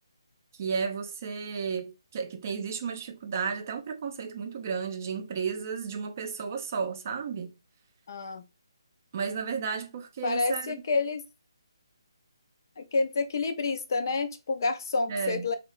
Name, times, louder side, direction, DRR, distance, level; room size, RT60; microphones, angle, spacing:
voice 1, 0.6-7.5 9.1-10.7 15.1-15.5, right 6 dB, 35° right, 0.4 m, -33 dB
voice 2, 8.1-8.4 10.2-11.2 12.8-15.5, left 3 dB, 45° left, 0.3 m, -29 dB
2.7 x 2.1 x 2.4 m
figure-of-eight pair, 150°, 3 cm